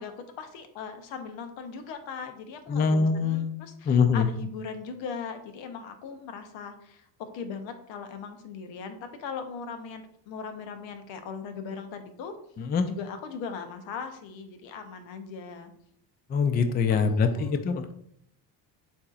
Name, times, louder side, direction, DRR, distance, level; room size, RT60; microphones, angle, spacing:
voice 1, 0.0-12.3 12.8-15.7 16.9-17.6, left 5 dB, 70° left, 8 dB, 0.8 m, -39 dB
voice 2, 2.7-4.3 12.6-12.9 16.3-17.9, left 5 dB, 25° left, 9 dB, 0.3 m, -24 dB
6.9 x 2.8 x 2.4 m, 0.70 s
supercardioid pair, 70°, 46 cm